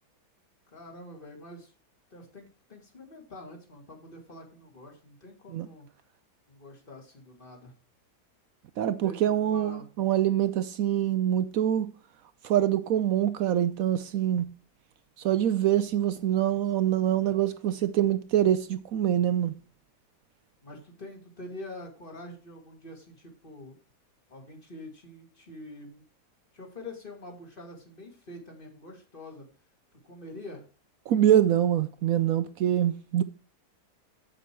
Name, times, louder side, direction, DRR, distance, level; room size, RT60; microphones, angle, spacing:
voice 1, 0.7-1.7 2.1-5.9 6.5-7.7 9.0-9.9 20.6-23.8 24.3-26.0 26.5-29.5 30.0-30.6, left 1 dB, 30° left, 2.4 m, -45 dB
voice 2, 8.8-11.9 12.4-14.5 15.2-19.5 31.1-33.2, right 11 dB, 70° right, 0.9 m, -25 dB
7.9 x 7.6 x 4.5 m
omnidirectional pair, 1.7 m